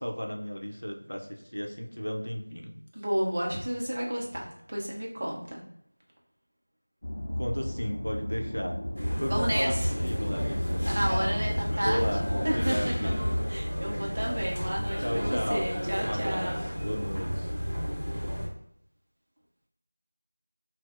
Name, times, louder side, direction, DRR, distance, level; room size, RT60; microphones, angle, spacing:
voice 1, 0.0-2.8 7.4-8.8 9.2-10.8 11.7-13.2 15.0-17.5, equal, 65° left, 2 dB, 0.7 m, -34 dB
voice 2, 2.9-5.6 9.3-9.9 10.8-12.1 12.4-12.9 13.5-16.6, equal, 20° right, -2 dB, 0.5 m, -31 dB
sound 1, 7.0-13.4, equal, 25° left, 0.7 m, -32 dB
sound 2, 8.9-18.5, equal, 10° left, 1.3 m, -32 dB
5.9 x 2.0 x 2.5 m, 0.74 s
figure-of-eight pair, 175°, 0 cm